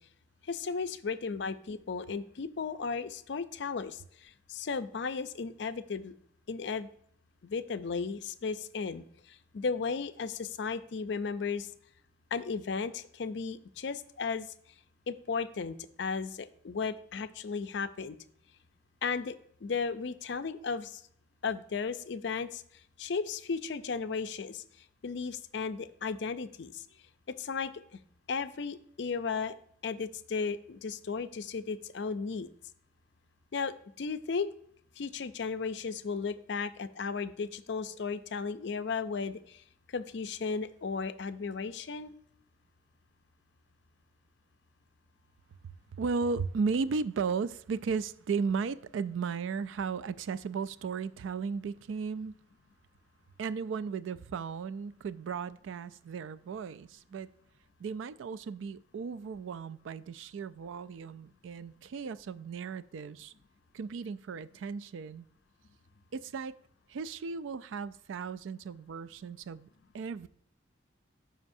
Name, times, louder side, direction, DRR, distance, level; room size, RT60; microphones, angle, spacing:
voice 1, 0.5-4.0 4.5-6.1 6.5-6.9 7.4-9.0 9.5-11.7 12.3-14.5 15.1-18.2 19.0-19.3 19.6-21.0 21.4-22.6 23.0-24.6 25.0-26.8 27.4-27.7 28.3-29.5 29.8-32.5 33.5-34.5 35.0-39.6 39.9-42.1, left 5 dB, 65° left, 0.4 m, -35 dB
voice 2, 45.9-52.3 53.4-57.3 57.8-63.3 63.7-65.2 66.1-66.6 66.9-69.7 69.9-70.3, right 5 dB, 80° right, 0.3 m, -35 dB
12.5 x 5.0 x 2.6 m
head